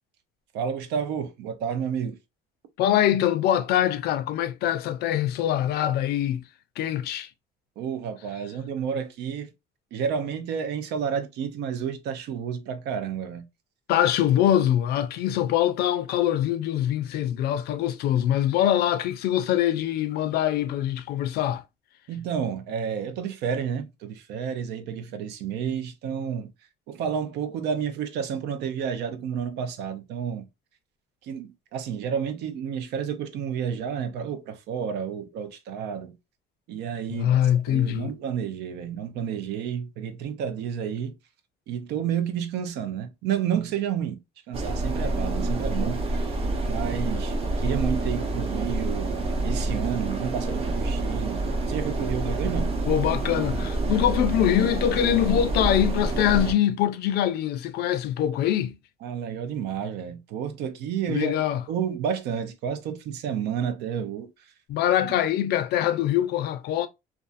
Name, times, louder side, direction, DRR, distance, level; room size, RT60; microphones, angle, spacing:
voice 1, 0.5-2.2 7.8-9.5 9.9-13.5 22.1-26.5 26.9-30.4 31.2-36.2 36.7-37.4 37.7-41.2 41.7-44.2 44.5-46.3 46.6-49.1 49.4-52.7 59.0-61.4 61.7-64.3, right 8 dB, 80° right, 0.5 m, -30 dB
voice 2, 2.8-6.4 6.8-7.3 13.9-21.6 37.1-38.1 52.9-58.7 61.1-61.6 64.7-66.9, left 11 dB, 75° left, 0.4 m, -23 dB
sound 1, 44.5-56.5, right 2 dB, 35° right, 0.8 m, -27 dB
2.5 x 2.3 x 2.5 m
cardioid pair, 110°, 17 cm